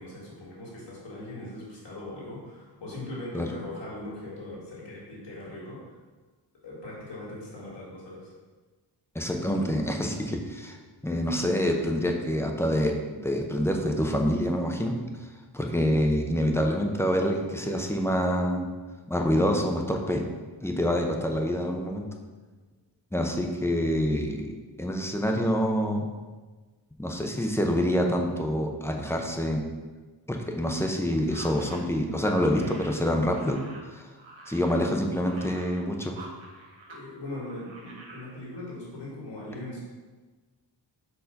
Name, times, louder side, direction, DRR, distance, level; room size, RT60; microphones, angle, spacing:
voice 1, 0.0-5.8 6.6-8.3 36.9-39.9, left 1 dB, 65° left, -6 dB, 2.2 m, -40 dB
voice 2, 9.1-10.8 11.0-15.0 15.5-18.7 19.1-20.2 20.6-22.1 23.1-24.5 24.8-26.0 27.0-29.6 30.3-33.6 33.9-34.1 34.5-36.2, equal, 5° left, 2 dB, 0.5 m, -26 dB
sound 1, 31.2-37.0 37.3-38.3, right 2 dB, 80° right, 1.2 m, -47 dB
4.9 x 4.6 x 5.6 m, 1.3 s
wide cardioid pair, 170°, 46 cm